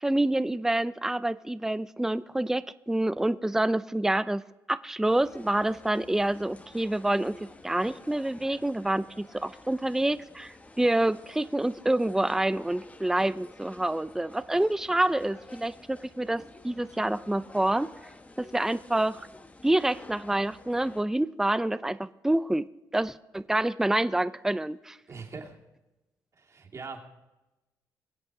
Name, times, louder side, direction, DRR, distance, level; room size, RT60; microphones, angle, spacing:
voice 1, 0.0-4.4 4.7-7.4 7.6-17.9 18.4-19.3 19.6-22.7 22.9-25.0, right 1 dB, 5° right, 15 dB, 0.5 m, -27 dB
sound 1, 5.0-21.0, left 2 dB, 20° left, 1.1 m, -51 dB
voice 2, 25.1-25.6 26.4-27.1, right 4 dB, 40° right, 0 dB, 2.8 m, -41 dB
23.0 x 7.9 x 4.9 m, 1.0 s
cardioid pair, 80°, 8 cm